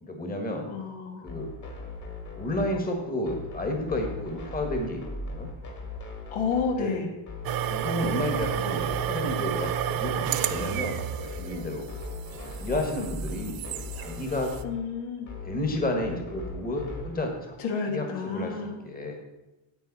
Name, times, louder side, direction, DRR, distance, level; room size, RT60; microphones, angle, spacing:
voice 1, 0.0-0.7 1.2-1.5 2.4-5.5 6.7-7.0 7.7-11.9 12.3-14.5 15.4-17.5 17.9-18.6 18.8-19.1, left 1 dB, 15° left, 2 dB, 1.5 m, -31 dB
voice 2, 0.7-1.3 6.3-7.1 14.6-15.3 17.6-18.8, left 5 dB, 70° left, 2 dB, 1.9 m, -30 dB
sound 1, 1.3-17.2, left 2 dB, 35° left, 2.0 m, -39 dB
sound 2, 7.4-14.6, right 10 dB, 45° right, 0.5 m, -31 dB
9.6 x 8.1 x 4.1 m, 0.99 s
cardioid pair, 120°, 50 cm